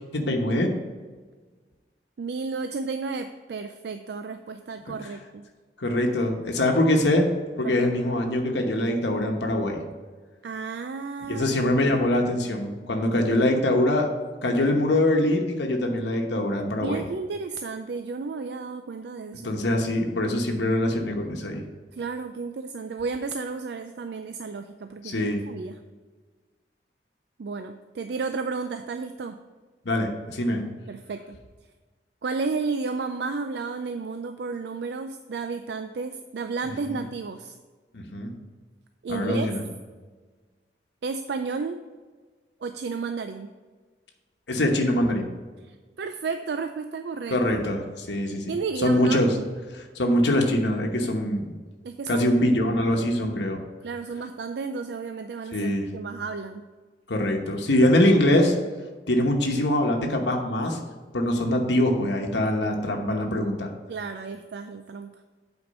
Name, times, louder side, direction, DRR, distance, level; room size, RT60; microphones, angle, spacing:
voice 1, 0.1-0.7 5.8-7.3 7.6-9.8 11.3-14.1 14.4-17.0 19.4-21.6 25.0-25.4 29.8-30.6 37.9-38.3 39.1-39.6 44.5-45.3 47.3-48.5 48.8-49.3 49.7-51.4 52.1-53.6 55.5-55.9 57.1-58.5 59.1-60.8 61.1-63.7, left 1 dB, 85° left, 2 dB, 1.0 m, -23 dB
voice 2, 2.2-5.4 7.6-7.9 10.4-11.6 16.8-19.6 21.9-25.8 27.4-29.4 30.9-31.4 32.2-37.6 39.0-39.5 41.0-41.8 42.6-43.5 45.6-47.4 48.5-49.2 50.1-50.2 51.0-51.1 51.8-52.4 53.8-56.6 63.9-65.1, right 4 dB, 70° right, 8 dB, 0.4 m, -32 dB
8.5 x 4.5 x 5.3 m, 1.4 s
head